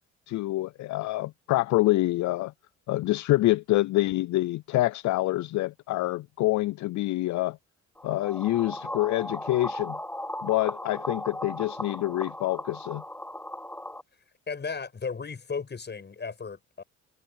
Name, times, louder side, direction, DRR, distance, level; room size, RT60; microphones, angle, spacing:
voice 1, 0.3-2.5 2.9-7.6 8.0-10.0 10.4-13.0, left 17 dB, 70° left, 0.5 m, -26 dB
sound 1, 8.0-14.0, left 1 dB, 5° left, 3.8 m, -37 dB
voice 2, 14.5-16.8, left 5 dB, 35° left, 7.6 m, -35 dB
cardioid pair, 90°, 30 cm